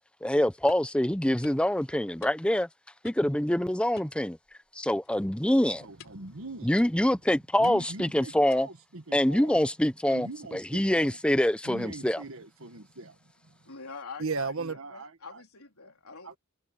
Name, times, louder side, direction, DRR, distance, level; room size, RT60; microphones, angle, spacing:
voice 1, 0.2-2.7 3.0-4.4 4.8-5.9 6.6-8.7 9.1-12.2, left 1 dB, 5° left, 0.7 m, -25 dB
sound 1, 0.7-1.0 1.4-1.7 2.2-2.7 3.0-3.4 4.0-4.7 5.0-5.3 6.0-6.3 6.8-7.2 7.6-8.0 8.5-8.8, left 4 dB, 60° left, 5.6 m, -52 dB
voice 2, 5.8-6.9 7.5-9.6 10.0-11.2 11.4-13.2 14.2-15.4 16.3-16.4, right 3 dB, 65° right, 1.6 m, -39 dB
voice 3, 13.7-16.4, left 4 dB, 75° left, 3.8 m, -45 dB
head